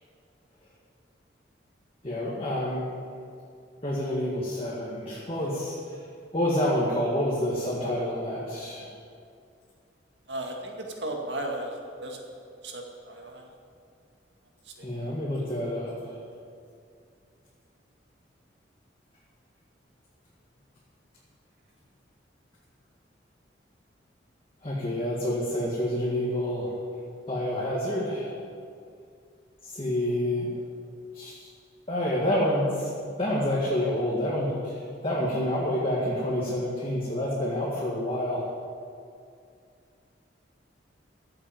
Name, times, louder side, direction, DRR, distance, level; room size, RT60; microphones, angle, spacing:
voice 1, 2.0-2.9 3.8-5.9 6.3-8.9 14.8-16.1 24.6-26.7 27.3-28.3 29.6-30.5 31.1-31.5 31.9-32.9 33.2-38.5, left 1 dB, 30° left, -5 dB, 2.0 m, -28 dB
voice 2, 10.3-11.7 12.0-12.2 12.6-13.5, right 1 dB, 70° right, 1 dB, 2.1 m, -35 dB
15.0 x 8.0 x 7.7 m, 2.3 s
head